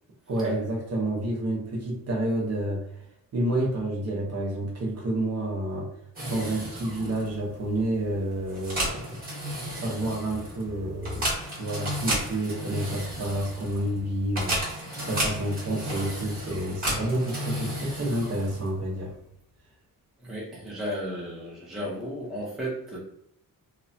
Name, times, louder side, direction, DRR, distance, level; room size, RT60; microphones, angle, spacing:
voice 1, 0.3-2.8 3.3-5.9 6.3-9.2 9.7-19.1, right 1 dB, 45° right, -3 dB, 0.8 m, -29 dB
sound 1, 6.2-18.9, right 1 dB, 25° right, 1.1 m, -33 dB
voice 2, 20.2-23.0, equal, ahead, -6 dB, 0.6 m, -34 dB
2.9 x 2.2 x 2.6 m, 0.73 s
wide cardioid pair, 170°, 35 cm